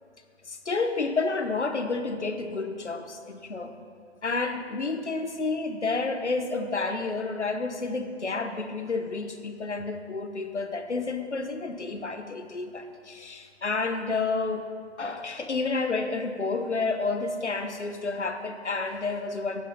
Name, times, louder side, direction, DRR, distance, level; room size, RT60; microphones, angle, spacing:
voice 1, 0.5-3.7 4.2-14.7 15.0-19.6, left 3 dB, 85° left, 7 dB, 1.1 m, -30 dB
11.5 x 8.5 x 5.4 m, 2.1 s
figure-of-eight pair, 125°, 34 cm